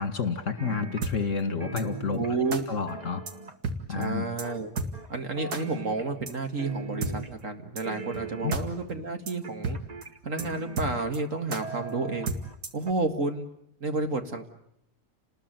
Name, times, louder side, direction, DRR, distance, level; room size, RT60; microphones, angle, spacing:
voice 1, 0.0-2.2 2.7-3.2 3.9-4.3 8.4-8.5, left 5 dB, 50° left, 9 dB, 2.3 m, -29 dB
sound 1, 0.6-1.4 1.6-3.8 4.4-5.1 5.4-6.3 6.6-7.5 7.8-8.8 9.4-11.3 11.6-12.6 12.9-13.0, right 3 dB, 25° right, 1.3 m, -40 dB
sound 2, 1.0-1.1 1.8-1.9 2.5-2.6 3.3-3.4 3.6-4.1 4.4-4.5 4.8-4.9 5.5-5.6 6.3-6.4 7.0-7.1 7.8-7.9 8.1-8.2 8.5-8.6 8.9-9.0 9.3-9.4 9.6-9.8 10.0-10.1 10.4-10.5 10.8-11.2 11.5-11.6 12.3-12.8, right 3 dB, 70° right, 2.5 m, -31 dB
voice 2, 2.2-2.6 3.9-4.7 5.1-9.8 10.2-12.3 12.7-13.5 13.8-14.5, right 3 dB, 50° right, 6 dB, 2.2 m, -30 dB
29.5 x 20.0 x 9.1 m, 0.78 s
omnidirectional pair, 1.7 m